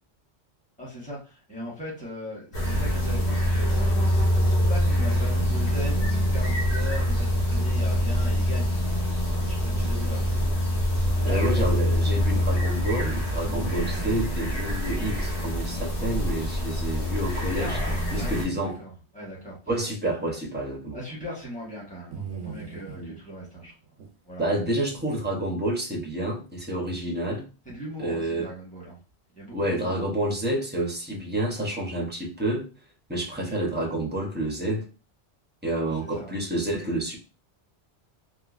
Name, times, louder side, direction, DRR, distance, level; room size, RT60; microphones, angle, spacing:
voice 1, 0.8-4.1 4.6-8.8 9.3-10.7 11.2-11.7 17.5-18.3 18.8-19.6 20.9-23.7 24.2-24.5 27.6-28.9 29.3-30.1 35.8-36.4, left 1 dB, 5° left, 1.3 m, -39 dB
sound 1, 2.5-18.4, equal, 80° left, 1.2 m, -25 dB
sound 2, 5.4-6.2 9.7-10.5 13.4-14.4 17.5-18.8 20.7-20.8 22.1-23.0 24.0-24.1, right 6 dB, 85° right, 0.9 m, -38 dB
voice 2, 11.2-17.8 18.1-18.8 19.7-21.0 23.0-23.2 24.4-27.4 28.0-28.5 29.5-32.7 33.1-34.9 35.6-37.2, right 1 dB, 10° right, 0.7 m, -29 dB
2.9 x 2.5 x 2.5 m
omnidirectional pair, 1.1 m